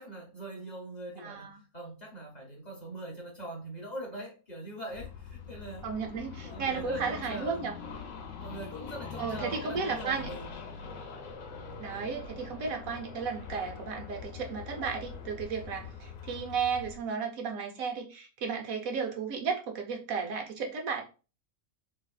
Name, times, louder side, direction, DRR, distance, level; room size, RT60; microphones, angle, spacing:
voice 1, 0.0-5.9 6.4-7.6 8.4-10.5, right 1 dB, 40° left, 0.8 m, -42 dB
voice 2, 1.2-1.6 5.8-7.7 9.2-10.3 11.8-21.0, right 5 dB, 80° right, 1.2 m, -34 dB
sound 1, 4.9-17.0, left 6 dB, 70° left, 1.0 m, -43 dB
3.3 x 2.9 x 2.3 m
omnidirectional pair, 1.4 m